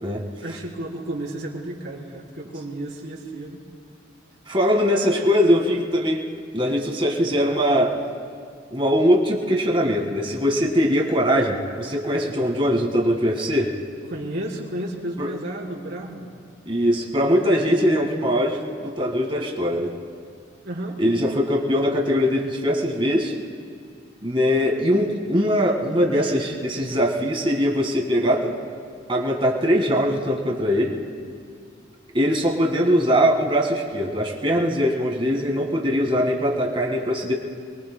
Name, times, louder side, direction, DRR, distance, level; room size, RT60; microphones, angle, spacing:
voice 1, 0.4-3.6 14.1-16.3 20.6-21.0, right 1 dB, 60° right, -4 dB, 3.5 m, -32 dB
voice 2, 4.5-6.2 6.5-8.0 8.7-13.7 15.2-15.3 16.6-19.9 21.0-23.3 24.2-28.6 29.1-31.0 32.1-37.3, equal, 30° right, 0 dB, 1.7 m, -21 dB
28.5 x 22.0 x 2.2 m, 2.2 s
head